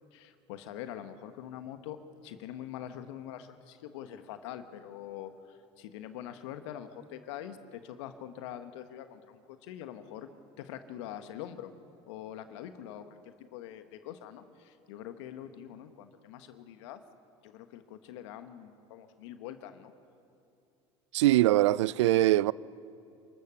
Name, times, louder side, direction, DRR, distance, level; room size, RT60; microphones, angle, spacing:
voice 1, 0.1-2.0 2.2-10.3 10.6-11.7 12.1-17.0 17.4-19.9, left 11 dB, 75° left, 1.3 m, -44 dB
voice 2, 21.1-22.5, right 16 dB, 85° right, 0.4 m, -22 dB
29.0 x 13.5 x 7.0 m
hypercardioid pair, 80°, 15 cm